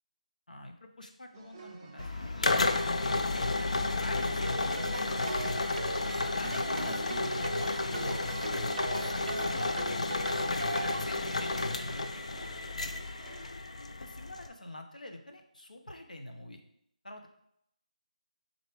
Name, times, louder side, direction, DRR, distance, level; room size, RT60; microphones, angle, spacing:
voice 1, 0.5-5.8 6.3-8.4 9.0-12.3 12.8-12.9 14.0-16.6 17.0-17.3, left 1 dB, 90° left, 4 dB, 0.7 m, -45 dB
sound 1, 1.3-13.5, right 3 dB, 20° right, 0.4 m, -51 dB
sound 2, 2.0-14.5, left 2 dB, 55° left, 0.4 m, -32 dB
sound 3, 4.2-11.1, right 3 dB, 75° right, 0.3 m, -40 dB
3.9 x 3.3 x 3.3 m, 0.75 s
figure-of-eight pair, 165°, 4 cm